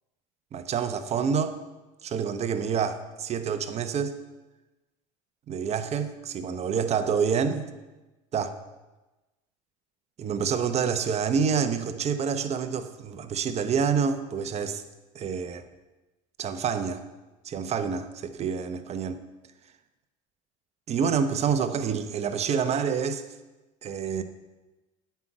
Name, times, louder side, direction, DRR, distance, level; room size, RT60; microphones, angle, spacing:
voice 1, 0.5-1.6 2.0-4.2 5.5-7.7 8.3-8.5 10.2-14.8 15.1-15.6 16.4-17.0 17.4-19.2 20.9-23.2 23.8-24.2, right 6 dB, 40° right, 10 dB, 0.9 m, -27 dB
9.5 x 5.6 x 8.4 m, 1.1 s
hypercardioid pair, 90°, 18 cm